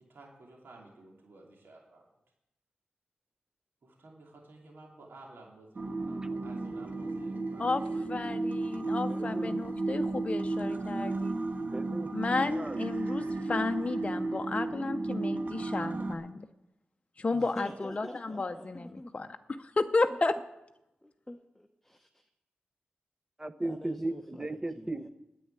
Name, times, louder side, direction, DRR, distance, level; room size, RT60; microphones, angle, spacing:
voice 1, 0.0-2.0 3.8-8.0, right 2 dB, 80° right, -1 dB, 2.8 m, -53 dB
sound 1, 5.8-16.1, right 2 dB, 55° right, 1.5 m, -33 dB
voice 2, 8.1-11.3 12.1-16.5 17.2-20.4, left 3 dB, 35° left, 7 dB, 0.6 m, -32 dB
voice 3, 9.1-9.6 11.7-12.1 12.4-12.8 23.4-25.1, right 2 dB, 20° right, 12 dB, 0.8 m, -36 dB
voice 4, 17.3-19.1 21.0-22.1 23.6-24.9, left 1 dB, 5° left, 4 dB, 0.9 m, -45 dB
9.9 x 8.6 x 9.6 m, 0.89 s
wide cardioid pair, 80°, 4 cm